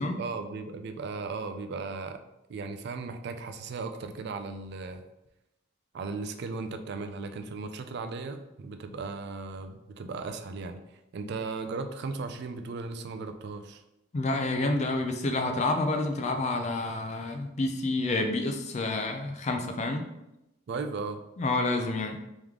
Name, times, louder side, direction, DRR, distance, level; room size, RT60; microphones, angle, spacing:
voice 1, 0.0-2.2 2.5-5.0 5.9-10.8 11.1-13.8 20.7-21.2, right 4 dB, 55° right, 7 dB, 0.3 m, -36 dB
voice 2, 14.1-20.0 21.4-22.2, left 2 dB, 35° left, 5 dB, 0.4 m, -29 dB
3.5 x 3.1 x 3.6 m, 0.90 s
head